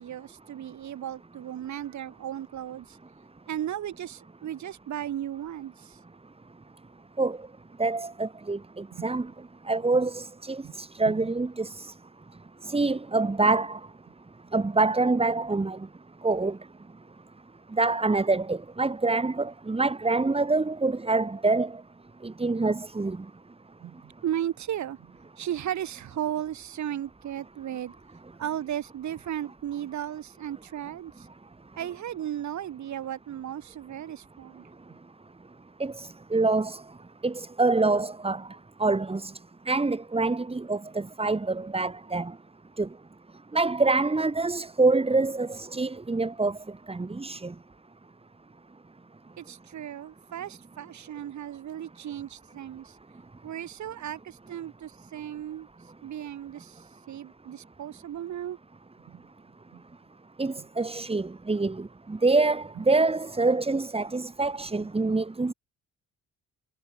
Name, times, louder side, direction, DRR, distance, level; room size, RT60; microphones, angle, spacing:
voice 1, 0.0-3.0 3.5-6.0 8.9-9.1 10.6-10.8 11.1-11.3 23.8-27.9 28.4-31.3 31.8-34.7 49.4-53.0 53.4-55.7 56.0-58.6 59.1-59.2 59.7-59.8 60.6-60.7, right 11 dB, 70° right, 5.8 m, -35 dB
voice 2, 7.8-9.3 9.7-11.9 12.7-13.8 14.5-15.8 16.2-16.6 17.8-21.7 22.2-23.2 35.8-36.8 37.2-38.4 38.8-39.3 39.7-42.3 42.8-42.9 43.5-46.6 46.9-47.5 60.4-65.5, right 3 dB, 20° right, 3.0 m, -26 dB
cardioid pair, 90°, 30 cm